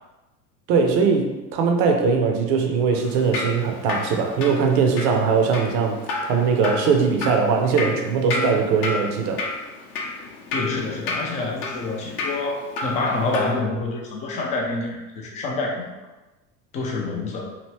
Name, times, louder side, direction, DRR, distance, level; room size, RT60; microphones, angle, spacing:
voice 1, 0.7-6.0 6.3-9.4, right 5 dB, 40° right, 3 dB, 0.6 m, -20 dB
Drip, 2.9-13.5, left 3 dB, 45° left, 0.7 m, -31 dB
voice 2, 10.5-15.9 16.7-17.4, left 3 dB, 15° left, 0 dB, 0.3 m, -27 dB
2.9 x 2.7 x 3.1 m, 1.1 s
figure-of-eight pair, 80°, 46 cm